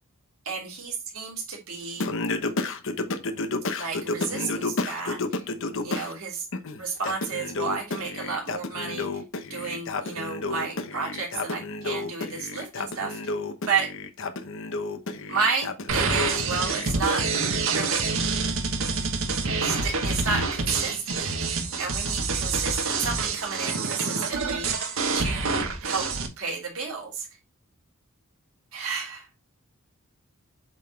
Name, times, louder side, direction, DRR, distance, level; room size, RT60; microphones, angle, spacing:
voice 1, 0.5-2.1 3.8-5.5 5.8-6.5 6.8-9.1 9.5-13.3 13.7-13.9 15.3-17.3 17.6-18.1 19.6-24.9 25.1-25.5 25.8-26.1 26.4-27.3 28.7-29.3, right 5 dB, 85° right, 2.9 m, -31 dB
Singing, 2.0-6.1 6.5-16.9, left 3 dB, 65° left, 1.0 m, -31 dB
sound 1, 15.9-26.3, right 4 dB, 70° right, 1.4 m, -27 dB
8.1 x 4.1 x 4.1 m
head